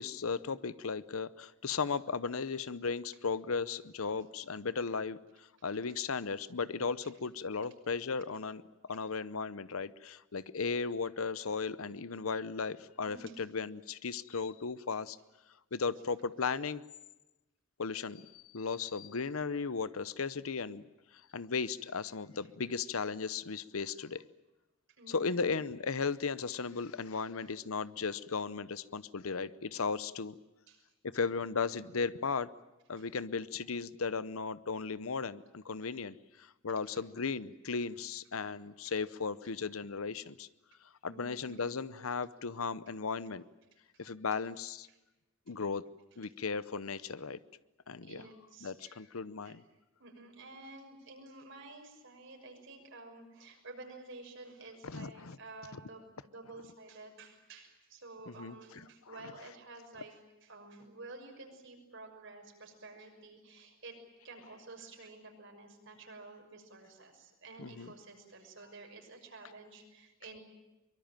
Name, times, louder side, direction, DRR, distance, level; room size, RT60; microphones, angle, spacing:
voice 1, 0.0-8.6 8.9-15.2 15.7-16.8 17.8-20.8 21.3-24.2 25.1-30.4 31.0-32.5 32.9-40.5 41.0-43.4 44.0-44.9 45.5-45.8 46.2-47.4 47.9-48.2 48.6-49.6 54.8-55.4 58.3-58.8 67.6-67.9, left 5 dB, 85° left, 16 dB, 0.8 m, -36 dB
voice 2, 13.0-13.4 14.3-14.4 25.0-25.4 30.7-30.8 33.0-33.1 38.8-38.9 41.1-41.6 44.9-45.0 45.5-45.6 46.2-46.3 48.0-49.0 49.4-49.6 50.0-64.0 64.2-70.4, right 3 dB, 65° right, 4 dB, 6.2 m, -51 dB
23.5 x 23.5 x 9.0 m, 1.0 s
head